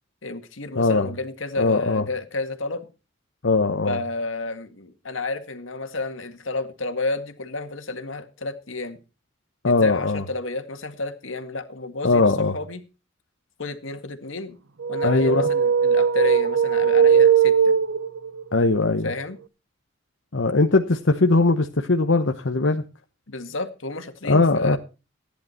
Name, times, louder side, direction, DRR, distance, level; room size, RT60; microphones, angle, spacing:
voice 1, 0.2-2.9 3.7-9.0 9.7-12.8 13.6-14.6 14.9-17.7 19.0-19.4 23.3-24.8, left 3 dB, 85° left, 7 dB, 2.0 m, -31 dB
voice 2, 0.7-1.1 1.6-2.0 3.4-4.0 9.6-10.2 12.0-12.6 15.0-15.5 18.5-19.1 20.3-22.8 24.2-24.8, left 3 dB, 70° left, 5 dB, 1.0 m, -20 dB
sound 1, 14.8-18.4, right 7 dB, 75° right, 0.7 m, -19 dB
15.0 x 10.5 x 4.4 m, 0.32 s
head